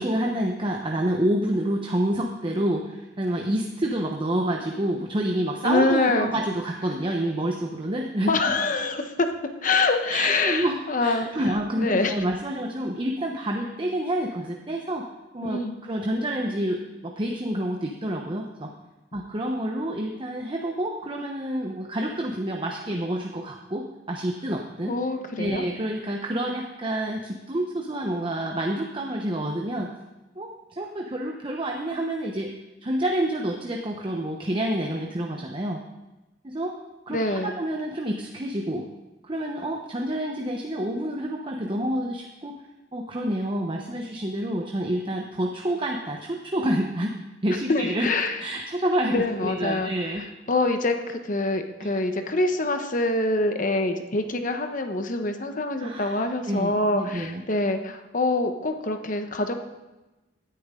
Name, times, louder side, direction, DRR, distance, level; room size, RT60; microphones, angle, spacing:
voice 1, 0.0-8.3 10.1-15.1 15.3-18.7 19.1-24.9 25.4-29.9 30.4-32.5 32.8-35.8 36.4-36.8 37.1-38.9 39.2-42.5 42.9-47.1 47.4-48.1 48.4-50.2 51.8-51.9 55.8-57.4, right 1 dB, 30° right, 1 dB, 0.9 m, -28 dB
voice 2, 5.6-6.3 8.3-9.3 9.6-11.3 11.8-12.2 15.4-15.8 24.9-25.6 37.1-37.5 47.7-48.4 49.1-59.5, left 2 dB, 45° left, 6 dB, 1.1 m, -25 dB
17.0 x 10.0 x 3.8 m, 1.1 s
head